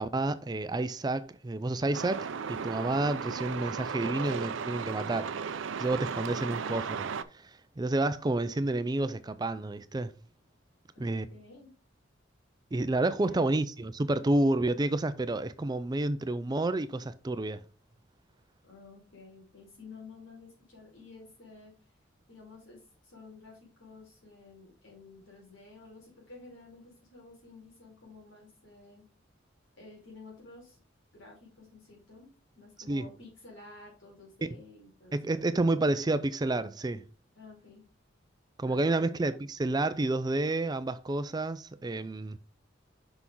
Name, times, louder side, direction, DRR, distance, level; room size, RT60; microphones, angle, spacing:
voice 1, 0.0-7.1 7.3-10.1 11.0-11.3 12.7-17.6 32.9-33.1 35.1-37.0 38.6-42.4, right 2 dB, 20° right, 0.4 m, -30 dB
Truck, 1.9-7.2, right 6 dB, 80° right, 0.5 m, -35 dB
voice 2, 10.9-11.7 13.3-13.4 18.6-21.7 22.3-29.1 29.8-30.8 31.1-35.2 35.5-35.6 37.3-37.8 38.6-39.2, left 3 dB, 75° left, 4.4 m, -52 dB
6.1 x 5.9 x 3.8 m
head